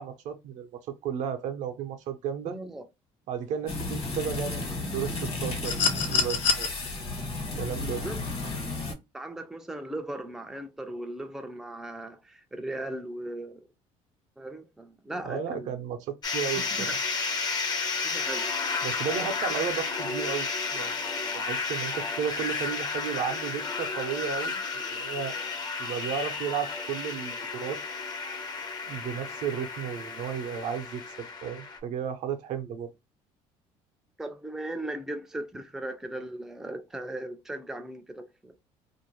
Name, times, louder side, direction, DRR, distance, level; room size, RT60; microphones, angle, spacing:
voice 1, 0.0-2.6 3.3-5.8 6.1-6.7 7.6-8.0 15.2-17.0 18.8-20.9 21.3-24.6 24.9-25.4 25.8-27.8 28.9-32.9, right 8 dB, 70° right, 0.6 m, -33 dB
voice 2, 2.5-2.8 7.8-8.2 9.1-13.7 14.4-15.7 16.7-16.9 18.0-18.5 34.2-38.6, right 1 dB, 5° right, 0.4 m, -38 dB
sound 1, 3.7-8.9, left 2 dB, 50° left, 1.2 m, -33 dB
sound 2, 5.6-6.7 8.2-8.3, left 6 dB, 70° left, 0.7 m, -25 dB
sound 3, 16.2-31.8, left 4 dB, 30° left, 0.6 m, -32 dB
2.5 x 2.1 x 3.0 m
cardioid pair, 100°, 13 cm